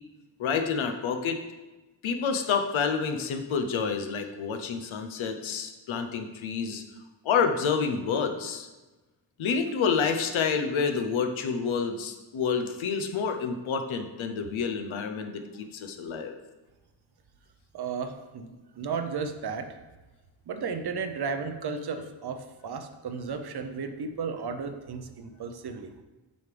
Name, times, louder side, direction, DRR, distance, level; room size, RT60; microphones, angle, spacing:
voice 1, 0.4-1.4 2.0-6.8 7.2-8.7 9.4-16.3, left 6 dB, 85° left, 6 dB, 0.8 m, -28 dB
voice 2, 17.7-19.8 20.5-25.9, right 5 dB, 55° right, 8 dB, 0.7 m, -34 dB
7.8 x 5.1 x 3.3 m, 1.1 s
cardioid pair, 90°, 46 cm